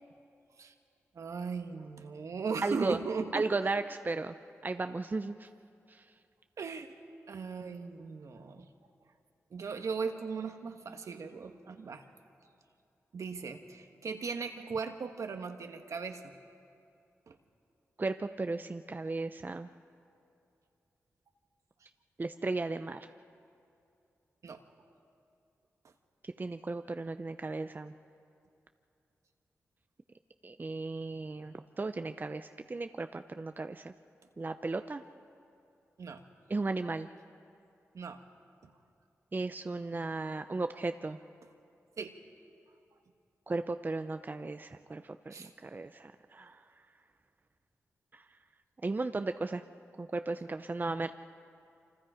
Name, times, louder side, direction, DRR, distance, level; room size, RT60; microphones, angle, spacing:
voice 1, 1.1-3.5 6.6-6.9 7.3-8.7 9.5-12.0 13.1-16.3 17.3-17.4 24.4-24.6 36.0-36.2 37.9-38.2 42.0-42.2 45.3-45.5, right 5 dB, 70° right, 6 dB, 1.5 m, -38 dB
voice 2, 2.6-3.0 3.3-4.3 4.6-5.5 18.0-19.7 22.2-23.1 26.4-27.9 30.4-33.9 34.4-35.0 36.5-37.1 39.3-41.2 43.5-45.4 45.6-46.6 48.8-49.6 50.0-51.1, right 3 dB, 35° right, 8 dB, 0.7 m, -35 dB
27.5 x 25.5 x 5.1 m, 2.5 s
cardioid pair, 50°, 6 cm